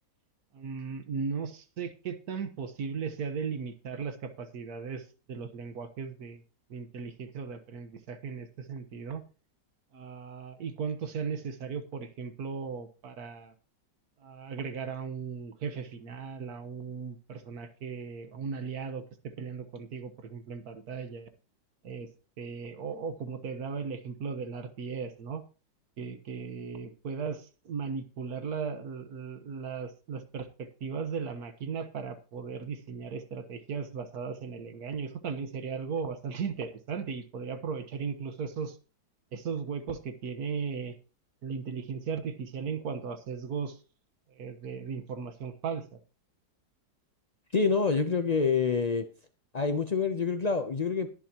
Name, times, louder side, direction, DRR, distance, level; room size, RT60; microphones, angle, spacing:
voice 1, 0.5-6.4 6.7-9.2 9.9-13.5 14.2-21.3 21.8-22.1 22.4-25.4 26.0-38.8 39.3-40.9 41.4-43.8 44.3-46.0, right 6 dB, 60° right, 9 dB, 1.7 m, -37 dB
voice 2, 47.5-49.0 49.5-51.1, left 5 dB, 70° left, 7 dB, 0.4 m, -26 dB
21.0 x 7.5 x 2.9 m, 0.34 s
omnidirectional pair, 1.9 m